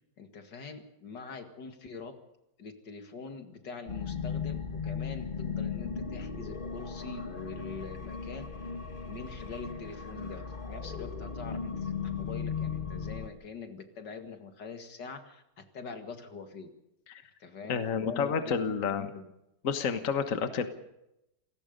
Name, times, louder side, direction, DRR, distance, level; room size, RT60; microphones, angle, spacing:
voice 1, 0.2-2.1 2.6-8.5 9.0-16.7 17.4-19.3, left 5 dB, 80° left, 6 dB, 2.6 m, -44 dB
sound 1, 3.9-13.3, left 6 dB, 30° left, 1.8 m, -36 dB
voice 2, 17.7-19.1 19.6-20.7, left 6 dB, 50° left, 8 dB, 1.7 m, -30 dB
28.0 x 18.5 x 5.3 m, 0.87 s
omnidirectional pair, 1.8 m